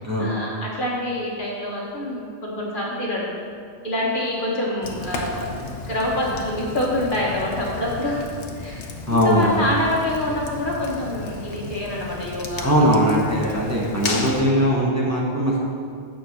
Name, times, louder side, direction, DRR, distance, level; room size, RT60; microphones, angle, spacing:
voice 1, 0.2-3.3 3.8-5.5 5.9-8.3 8.6-8.8 9.1-13.0 13.4-13.8 14.3-14.8, left 1 dB, 45° left, -4 dB, 1.7 m, -26 dB
Fire, 4.8-14.4, left 3 dB, 85° left, 1.2 m, -34 dB
voice 2, 9.1-9.6 12.6-15.6, equal, 15° right, -5 dB, 1.3 m, -20 dB
9.0 x 5.5 x 6.5 m, 2.2 s
omnidirectional pair, 1.2 m